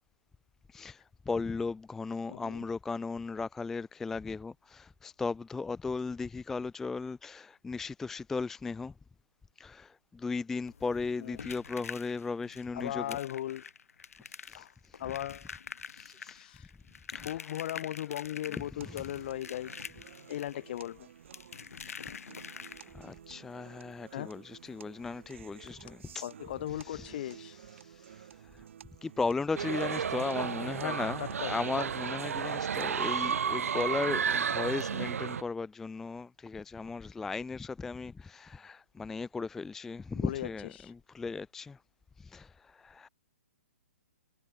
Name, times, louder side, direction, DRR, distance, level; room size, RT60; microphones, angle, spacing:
voice 1, 0.7-8.9 9.6-13.2 14.5-14.7 15.9-16.5 17.1-17.6 18.9-19.0 22.9-26.2 26.8-28.3 29.0-41.8 42.2-43.1, left 4 dB, 5° left, 0.3 m, -36 dB
voice 2, 2.3-2.7 11.2-11.4 12.7-13.6 14.5-14.7 15.0-15.5 16.2-16.7 17.1-19.7 20.3-21.1 24.1-24.3 26.2-27.6 30.8-31.5 40.1-40.9, left 12 dB, 45° left, 2.8 m, -38 dB
sound 1, 10.7-23.2 24.6-24.7 25.0-25.2 25.6-25.7, left 6 dB, 80° left, 1.4 m, -46 dB
sound 2, 18.8-34.8, right 9 dB, 55° right, 3.8 m, -53 dB
sound 3, 29.6-35.4, right 7 dB, 75° right, 0.9 m, -32 dB
hypercardioid pair, 155°, 8 cm